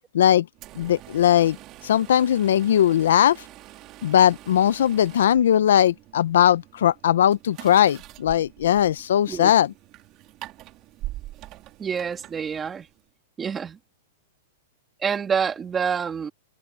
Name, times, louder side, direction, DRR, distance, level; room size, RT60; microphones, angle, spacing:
voice 1, 0.1-0.5 0.8-1.6 1.8-3.4 4.0-9.7, left 10 dB, 75° left, 0.7 m, -19 dB
sound 1, 0.5-13.1, right 16 dB, 30° right, 2.9 m, -44 dB
voice 2, 11.8-12.9 13.4-13.8 15.0-16.3, right 6 dB, 15° right, 2.2 m, -27 dB
hypercardioid pair, 160°, 0 cm